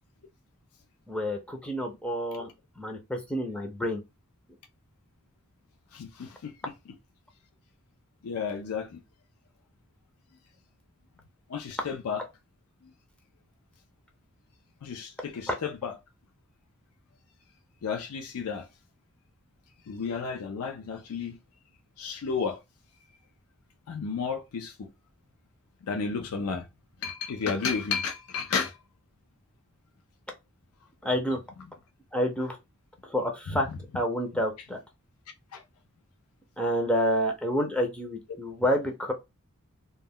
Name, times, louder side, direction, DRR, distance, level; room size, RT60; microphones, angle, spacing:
voice 1, 1.1-2.5 2.8-4.0 31.0-31.4 32.1-32.6 33.1-33.7 33.9-34.8 36.6-39.1, equal, 5° left, 0.4 m, -28 dB
voice 2, 5.9-6.7 8.2-9.0 11.5-12.2 14.8-15.9 17.8-18.7 19.9-21.4 22.0-22.6 23.9-24.9 25.8-26.7 27.0-28.8 33.5-33.8 35.5-35.6, left 5 dB, 80° left, 0.4 m, -32 dB
2.1 x 2.1 x 3.5 m
head